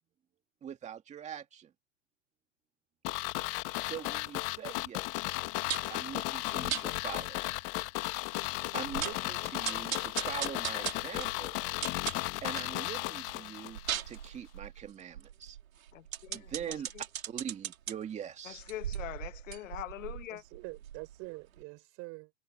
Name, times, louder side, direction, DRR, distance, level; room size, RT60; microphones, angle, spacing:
voice 1, 0.6-1.7 3.8-5.3 5.9-7.4 8.4-11.5 12.4-13.8 14.1-15.6 16.3-18.6, right 9 dB, 15° right, 2.3 m, -43 dB
sound 1, 3.0-14.0 14.3-14.4, left 22 dB, 35° left, 1.6 m, -35 dB
sound 2, 5.7-6.0 6.7-6.9 7.4-7.5 7.8-7.9 8.3-8.4 8.8-9.3 9.6-12.7 13.1-17.9 18.5-21.2 21.6-21.7, right 10 dB, 85° right, 3.6 m, -39 dB
voice 2, 15.9-17.0 18.4-20.4, left 14 dB, 70° left, 1.3 m, -43 dB
voice 3, 20.3-22.3, right 25 dB, 40° right, 4.4 m, -45 dB
hypercardioid pair, 140°, 40 cm